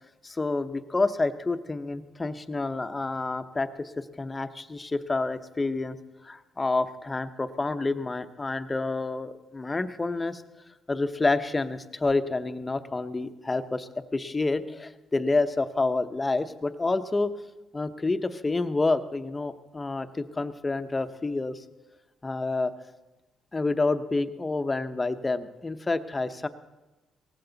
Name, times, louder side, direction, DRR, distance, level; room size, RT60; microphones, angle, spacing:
voice 1, 0.2-6.0 6.2-10.4 10.9-17.3 17.7-21.6 22.2-22.7 23.5-26.5, left 3 dB, 20° left, 10 dB, 0.8 m, -28 dB
18.0 x 15.0 x 3.9 m, 1.1 s
cardioid pair, 90°, 0 cm